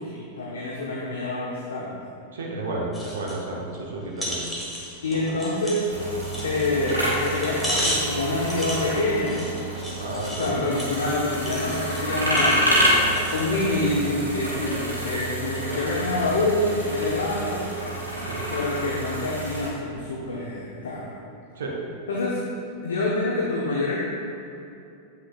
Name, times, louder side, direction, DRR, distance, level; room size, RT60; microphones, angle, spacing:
voice 1, 0.0-2.0 5.0-5.9 6.4-9.4 10.3-12.8 13.3-17.6 18.5-21.2 22.1-22.5 22.8-24.0, left 2 dB, 65° left, -4 dB, 0.7 m, -26 dB
voice 2, 2.3-4.4 5.1-5.3 9.9-10.6 18.2-18.4 21.6-21.8, right 2 dB, 65° right, -2 dB, 0.9 m, -32 dB
sound 1, 2.9-3.4 3.7-3.8 4.2-13.5 14.0-14.1, equal, 5° left, 1.4 m, -34 dB
sound 2, 5.9-19.7, right 1 dB, 90° right, 1.4 m, -28 dB
7.9 x 6.1 x 2.5 m, 2.7 s
figure-of-eight pair, 90°, 0 cm